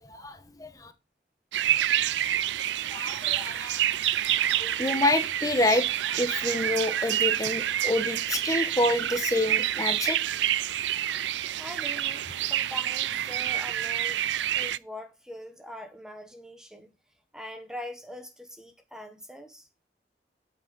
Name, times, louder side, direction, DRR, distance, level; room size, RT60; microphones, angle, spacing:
voice 1, 0.0-0.9 2.9-3.9 4.6-5.9 6.2-10.2, left 1 dB, 20° left, 1.0 m, -28 dB
sound 1, 1.5-14.8, right 12 dB, 85° right, 0.4 m, -28 dB
voice 2, 11.6-14.2 14.5-16.9 17.3-19.7, left 1 dB, 5° right, 1.0 m, -42 dB
8.9 x 7.9 x 4.0 m
head